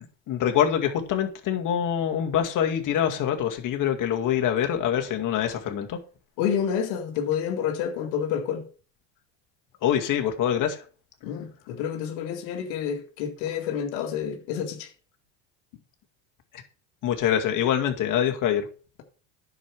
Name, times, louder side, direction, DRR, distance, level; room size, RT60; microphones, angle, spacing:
voice 1, 0.3-6.0 9.8-10.8 17.0-18.6, left 9 dB, 50° left, 2.2 m, -25 dB
voice 2, 6.4-8.6 11.2-14.9, left 8 dB, 70° left, 2.1 m, -29 dB
10.0 x 6.9 x 4.8 m
supercardioid pair, 100°, 39 cm